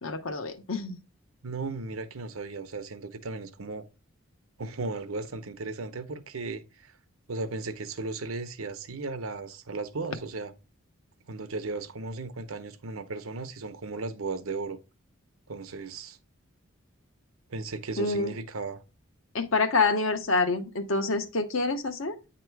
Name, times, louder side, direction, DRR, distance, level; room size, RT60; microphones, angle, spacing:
voice 1, 0.0-1.0 18.0-18.4 19.3-22.2, left 3 dB, 70° left, 0.9 m, -27 dB
voice 2, 1.4-3.8 4.6-6.9 7.3-10.5 11.3-14.8 15.5-16.2 17.5-18.8, right 3 dB, 80° right, 0.8 m, -36 dB
8.9 x 3.0 x 4.5 m
head